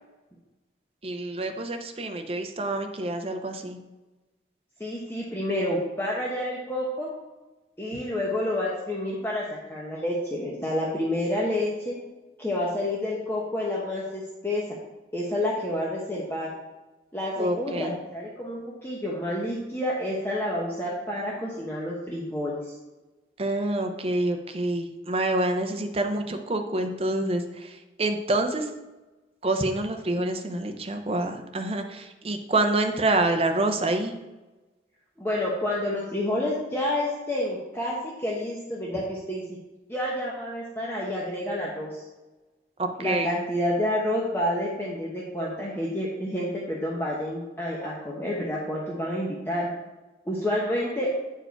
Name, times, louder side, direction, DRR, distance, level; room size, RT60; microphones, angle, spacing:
voice 1, 1.0-3.8 17.4-17.9 23.4-27.7 28.0-28.6 29.4-34.1 42.8-43.3, right 2 dB, 35° right, 5 dB, 0.7 m, -27 dB
voice 2, 4.8-7.1 7.8-11.9 12.4-14.6 15.1-16.5 17.1-22.6 35.2-39.6 39.9-42.0 43.0-49.7 50.3-51.1, left 1 dB, 15° left, -5 dB, 0.9 m, -29 dB
8.9 x 4.7 x 4.5 m, 1.1 s
head